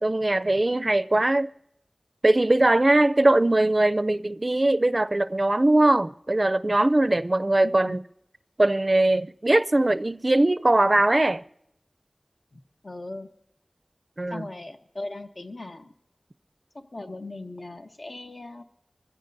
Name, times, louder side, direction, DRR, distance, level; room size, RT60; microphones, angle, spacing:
voice 1, 0.0-1.5 2.2-8.0 8.6-11.4 14.2-14.5, right 2 dB, 45° right, 0.4 m, -21 dB
voice 2, 7.6-8.0 12.8-13.3 14.3-15.9 16.7-18.6, left 2 dB, 65° left, 1.0 m, -38 dB
24.5 x 15.0 x 2.6 m
wide cardioid pair, 55°, 0 cm